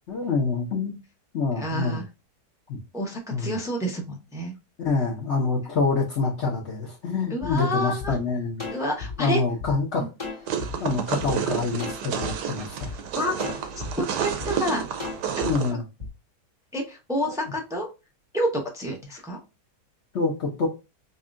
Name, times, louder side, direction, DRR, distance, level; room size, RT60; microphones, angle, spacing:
voice 1, 0.1-1.0 1.3-2.0 2.7-2.8 3.3-3.5 4.8-8.6 9.2-10.1 10.8-12.9 15.4-15.8 17.3-17.4 20.1-20.7, left 4 dB, 50° left, -3 dB, 1.1 m, -26 dB
voice 2, 1.6-2.0 2.9-4.5 7.3-8.2 8.7-9.4 10.0-10.1 12.9-13.4 14.0-14.9 15.7-15.8 16.7-17.9 18.3-19.4, equal, 5° right, 0 dB, 0.4 m, -29 dB
sound 1, 7.4-7.5 8.0-8.1 8.6-9.7 10.2-10.7 11.2-11.3 11.8-12.3 12.8-12.9 13.4-13.9 14.4-14.5 15.0-15.5 16.0-16.1, left 4 dB, 20° left, 1.3 m, -35 dB
sound 2, 10.5-15.7, right 7 dB, 80° right, 1.2 m, -30 dB
5.5 x 2.3 x 2.5 m, 0.27 s
omnidirectional pair, 1.8 m